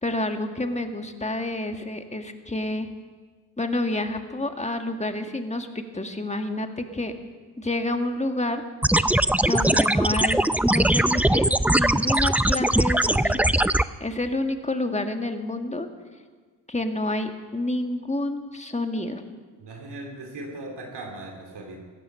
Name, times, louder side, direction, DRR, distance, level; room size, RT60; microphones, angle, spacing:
voice 1, 0.0-2.9 3.6-5.7 5.9-7.1 7.6-8.6 9.4-13.4 14.0-15.9 16.7-19.2, left 1 dB, 15° left, 6 dB, 1.7 m, -29 dB
sound 1, 8.8-13.8, right 1 dB, 5° right, 0.4 m, -21 dB
voice 2, 19.6-21.8, right 2 dB, 75° right, 1 dB, 2.9 m, -38 dB
16.0 x 13.5 x 5.6 m, 1.5 s
cardioid pair, 50°, 41 cm